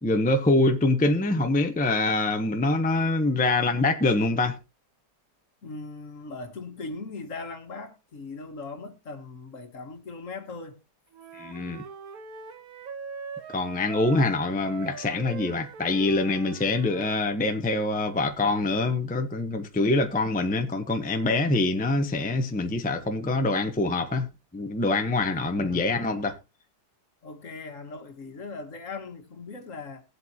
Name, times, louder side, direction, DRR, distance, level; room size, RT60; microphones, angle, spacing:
voice 1, 0.0-4.6 11.3-11.8 13.5-24.3 24.5-26.4, left 2 dB, 5° left, 0.7 m, -25 dB
voice 2, 5.6-10.8 25.3-25.7 27.2-30.0, left 3 dB, 50° left, 1.7 m, -39 dB
Wind instrument woodwind instrument, 11.1-17.4, right 6 dB, 60° right, 1.4 m, -41 dB
19.5 x 7.8 x 2.8 m
omnidirectional pair, 1.8 m